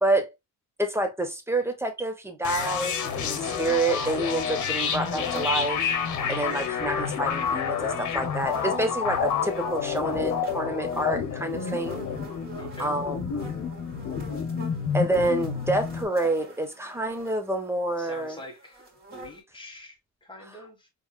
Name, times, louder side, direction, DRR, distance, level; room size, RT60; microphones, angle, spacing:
voice 1, 0.8-5.8 6.3-12.0 12.8-13.5 14.9-18.4, right 2 dB, 10° right, 1.2 m, -28 dB
sound 1, 2.4-16.1, left 6 dB, 75° left, 1.0 m, -29 dB
sound 2, 4.9-19.4, right 1 dB, 30° right, 2.8 m, -46 dB
voice 2, 12.6-12.9 18.0-18.8 19.1-20.9, left 1 dB, 15° left, 1.7 m, -44 dB
4.4 x 3.3 x 2.3 m
cardioid pair, 90°, 30 cm